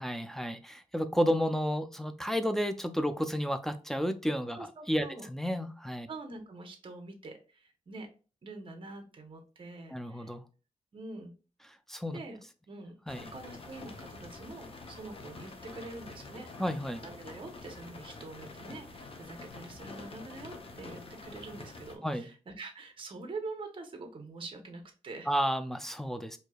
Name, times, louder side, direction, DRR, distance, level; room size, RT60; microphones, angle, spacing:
voice 1, 0.0-4.6 4.9-6.1 9.9-10.4 11.9-12.2 13.1-13.3 16.6-17.0 22.0-22.3 25.3-26.4, equal, 5° left, 10 dB, 0.4 m, -31 dB
voice 2, 4.5-5.3 6.1-8.1 8.4-10.3 10.9-11.3 12.1-12.4 12.7-13.0 13.3-16.5 17.0-25.3, right 3 dB, 40° right, 4 dB, 0.9 m, -45 dB
sound 1, 13.1-22.0, left 3 dB, 45° left, 0.7 m, -47 dB
4.5 x 2.7 x 2.3 m, 0.34 s
wide cardioid pair, 110°, 13 cm